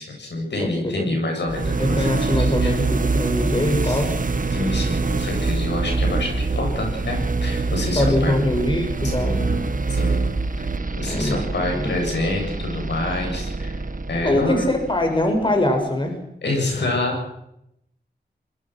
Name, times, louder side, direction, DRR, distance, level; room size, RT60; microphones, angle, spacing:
voice 1, 0.0-2.7 3.6-4.0 4.5-8.3 9.2-9.6 9.9-10.3 10.6-10.7 11.0-13.8 14.1-14.7 16.4-17.3, left 2 dB, 80° left, 2 dB, 8.0 m, -27 dB
voice 2, 0.6-1.2 1.8-4.1 7.9-9.4 11.1-11.9 14.2-16.2, left 1 dB, 30° left, 4 dB, 6.5 m, -23 dB
sound 1, 1.5-15.4, right 3 dB, 50° right, 2.1 m, -25 dB
23.0 x 21.0 x 6.2 m, 0.79 s
cardioid pair, 50°, 18 cm